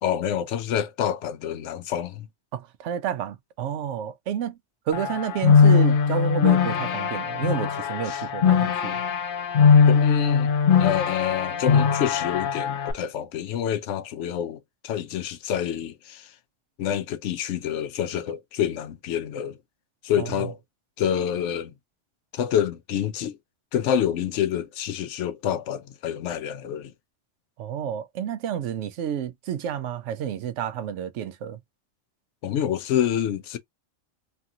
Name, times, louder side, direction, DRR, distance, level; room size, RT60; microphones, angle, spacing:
voice 1, 0.0-2.3 8.1-8.2 9.9-10.5 10.8-16.3 16.8-19.6 20.0-20.6 21.0-21.7 22.3-23.4 23.7-26.9 32.4-33.6, left 9 dB, 80° left, 0.9 m, -27 dB
voice 2, 2.5-4.6 4.9-9.0 20.2-20.3 27.6-31.6, right 9 dB, 85° right, 0.9 m, -30 dB
sound 1, 4.9-12.9, left 6 dB, 55° left, 0.7 m, -20 dB
3.2 x 2.4 x 2.6 m
omnidirectional pair, 1.2 m